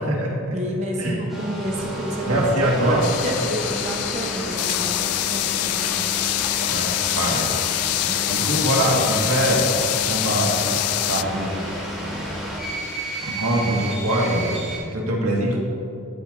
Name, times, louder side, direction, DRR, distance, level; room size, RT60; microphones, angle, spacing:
voice 1, 0.0-0.6 1.0-1.2 2.2-3.1 6.7-7.5 8.3-9.7 10.1-10.8 11.1-11.7 12.0-12.4 13.2-15.6, right 1 dB, 85° right, -2 dB, 1.9 m, -23 dB
voice 2, 0.5-5.0 5.3-6.1 8.1-8.5 10.6-10.7 12.1-12.7 13.2-13.4, equal, 30° right, -1 dB, 1.0 m, -31 dB
sound 1, 1.3-14.8, right 1 dB, ahead, 2.3 m, -31 dB
sound 2, 3.0-11.2, left 16 dB, 90° left, 0.3 m, -25 dB
13.5 x 9.7 x 2.7 m, 2.8 s
head